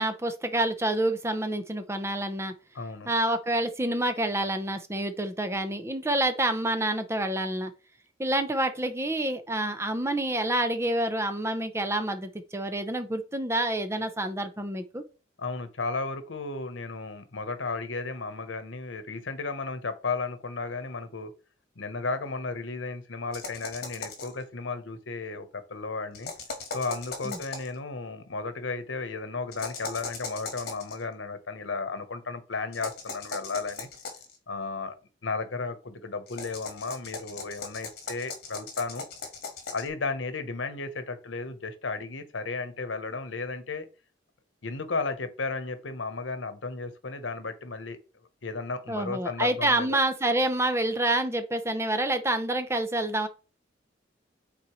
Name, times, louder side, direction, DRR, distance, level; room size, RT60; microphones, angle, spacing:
voice 1, 0.0-2.5 3.1-7.7 8.2-15.0 27.2-27.4 48.9-53.3, right 1 dB, 15° right, 0.7 m, -28 dB
voice 2, 2.7-3.1 15.4-21.3 21.8-26.3 26.7-33.9 34.5-34.9 35.2-39.1 39.7-43.9 44.6-48.0 48.4-50.0, left 3 dB, 85° left, 1.0 m, -34 dB
sound 1, 23.3-24.4 26.1-27.8 29.5-31.0 32.7-34.4 36.3-39.9, left 4 dB, 55° left, 1.7 m, -38 dB
8.8 x 4.2 x 3.1 m
head